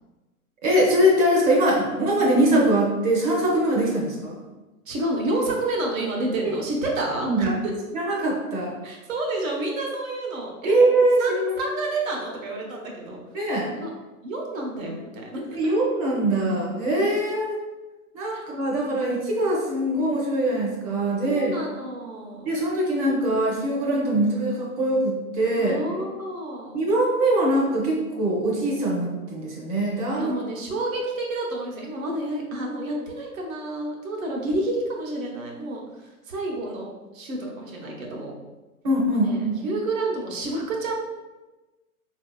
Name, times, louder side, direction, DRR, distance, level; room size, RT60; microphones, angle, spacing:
voice 1, 0.6-4.4 7.2-7.5 7.9-8.7 10.6-11.5 13.3-13.7 15.5-17.6 18.1-21.5 22.4-25.8 26.7-30.4 38.8-39.5, right 1 dB, 25° right, -3 dB, 0.7 m, -22 dB
voice 2, 4.9-7.7 8.8-10.8 11.2-13.2 13.8-13.9 14.2-15.7 18.3-18.4 21.2-22.6 25.6-26.8 30.1-38.3 39.1-40.9, right 2 dB, 65° right, 0 dB, 1.0 m, -30 dB
4.1 x 2.7 x 2.3 m, 1.1 s
hypercardioid pair, 150°, 44 cm